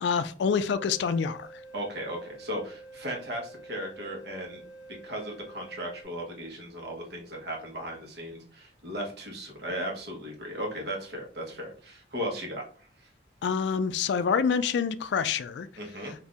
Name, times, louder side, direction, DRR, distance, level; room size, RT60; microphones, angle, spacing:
voice 1, 0.0-1.5 13.4-15.7, left 6 dB, 70° left, 0.3 m, -26 dB
sound 1, 0.7-6.0, right 2 dB, 5° left, 1.7 m, -48 dB
voice 2, 1.7-4.6 5.0-12.6 13.0-13.1 15.8-16.1, equal, 60° right, 1.1 m, -36 dB
4.1 x 2.6 x 2.4 m
head